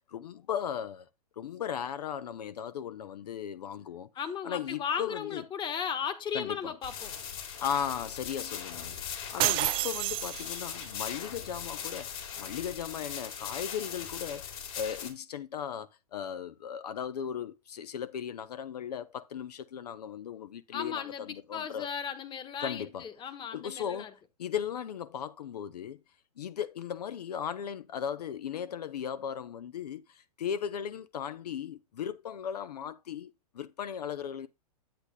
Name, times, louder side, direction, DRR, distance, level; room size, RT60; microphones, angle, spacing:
voice 1, 0.1-1.1 1.4-4.1 4.4-5.4 6.3-6.8 7.6-21.9 22.6-23.1 23.5-24.1 24.4-26.0 26.4-34.5, left 8 dB, 80° left, 0.7 m, -37 dB
voice 2, 4.1-7.1 20.7-24.1, left 7 dB, 25° left, 1.3 m, -36 dB
sound 1, 6.8-15.1, left 7 dB, 60° left, 3.8 m, -40 dB
sound 2, 9.4-10.9, right 18 dB, 25° right, 0.3 m, -29 dB
10.0 x 8.4 x 2.2 m
hypercardioid pair, 120°, 20 cm